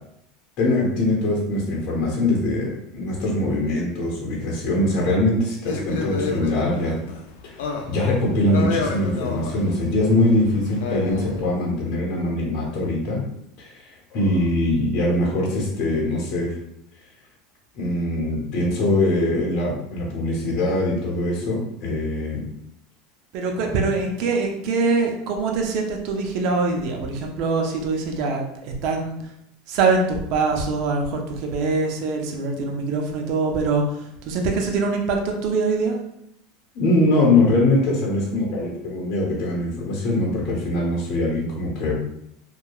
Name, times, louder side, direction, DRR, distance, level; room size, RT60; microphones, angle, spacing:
voice 1, 0.6-6.9 7.4-7.5 7.9-13.2 13.7-13.8 14.1-16.6 17.8-22.4 36.7-41.9, left 1 dB, 55° left, -3 dB, 0.8 m, -22 dB
sound 1, 5.7-11.5, left 4 dB, 80° left, 0.4 m, -30 dB
voice 2, 23.3-29.2 29.7-34.0 34.2-36.0, right 4 dB, 60° right, 2 dB, 0.5 m, -23 dB
2.8 x 2.2 x 2.3 m, 0.75 s
supercardioid pair, 115°, 0 cm